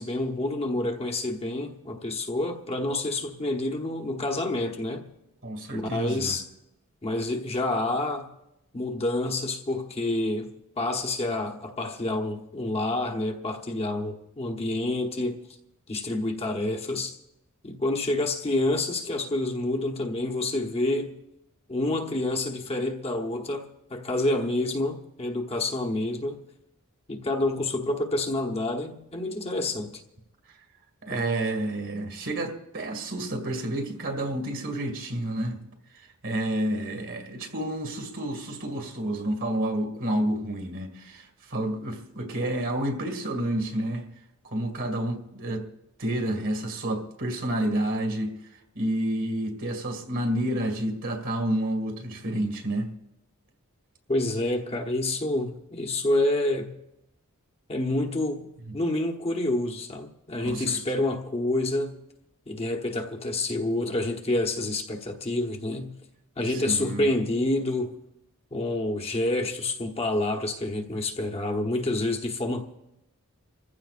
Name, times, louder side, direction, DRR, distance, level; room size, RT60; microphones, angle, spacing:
voice 1, 0.0-5.1 5.7-6.4 7.0-8.3 8.7-15.4 15.9-17.2 17.6-21.2 21.7-26.4 27.1-30.0 31.1-31.2 54.1-56.8 57.7-62.0 62.5-65.9 66.4-68.0 68.5-72.6, left 2 dB, 30° left, 1.0 m, -28 dB
voice 2, 5.4-6.4 31.0-35.6 35.9-44.1 44.5-45.7 46.0-48.4 48.8-52.9 60.4-60.8 66.5-67.1, right 1 dB, 60° right, 2.1 m, -29 dB
27.5 x 15.0 x 2.5 m
head